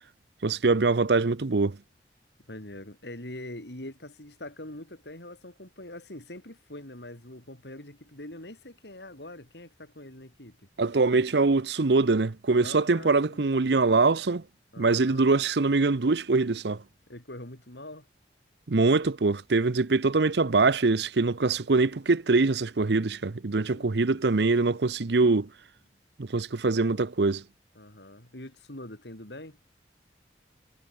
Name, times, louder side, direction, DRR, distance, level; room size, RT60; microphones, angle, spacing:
voice 1, 0.4-1.8 10.8-14.4 14.8-16.8 18.7-25.5 26.2-27.4, right 3 dB, 70° right, 0.7 m, -23 dB
voice 2, 2.5-10.7 12.6-13.8 14.7-15.3 17.1-18.1 23.7-24.2 27.7-29.6, left 1 dB, 75° left, 5.1 m, -44 dB
head